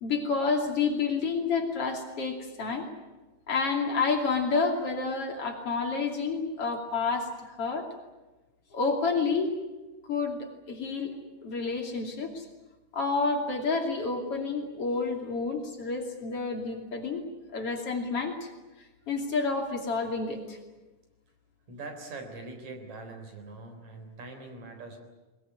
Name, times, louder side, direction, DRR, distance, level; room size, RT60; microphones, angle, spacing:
voice 1, 0.0-2.9 3.5-7.9 8.7-9.6 10.1-11.1 11.4-12.4 12.9-17.2 17.5-18.5 19.1-20.6, left 4 dB, 50° left, 2 dB, 3.6 m, -29 dB
voice 2, 21.7-25.0, right 3 dB, 65° right, 4 dB, 5.1 m, -42 dB
21.5 x 21.0 x 9.6 m, 1.1 s
omnidirectional pair, 3.6 m